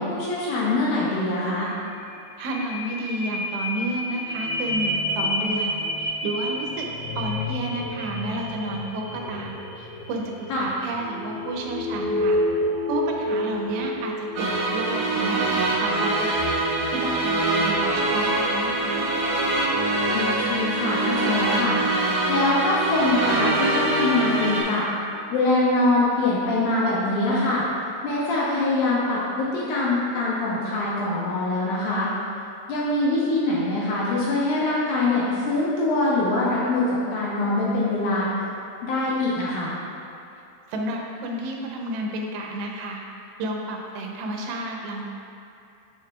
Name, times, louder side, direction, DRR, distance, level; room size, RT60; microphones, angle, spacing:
voice 1, 0.0-1.7 10.5-10.7 20.1-21.8 22.3-24.9 25.3-27.7 28.0-32.1 32.7-38.5 38.8-39.7, left 2 dB, 75° left, -6 dB, 2.2 m, -23 dB
sound 1, 2.0-17.9 18.4-18.5, left 1 dB, 90° left, 3.3 m, -30 dB
voice 2, 2.4-6.9 7.1-10.3 10.6-12.4 12.9-16.4 16.9-19.1 40.7-43.0 43.4-45.1, right 2 dB, 85° right, 0 dB, 2.9 m, -31 dB
sound 2, 14.4-24.6, right 2 dB, 55° right, 2.1 m, -24 dB
7.4 x 7.1 x 2.4 m, 2.7 s
omnidirectional pair, 4.8 m